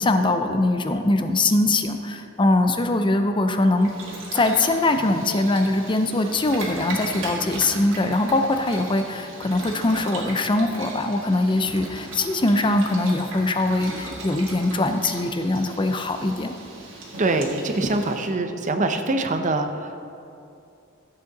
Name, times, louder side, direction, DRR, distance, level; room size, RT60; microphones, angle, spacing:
voice 1, 0.0-3.9 4.3-16.6, left 2 dB, 25° left, 7 dB, 0.5 m, -22 dB
Boiling, 3.8-18.3, right 2 dB, 75° right, 1.9 m, -37 dB
voice 2, 17.2-20.0, right 2 dB, 40° right, 6 dB, 0.7 m, -24 dB
14.0 x 7.8 x 4.0 m, 2.6 s
head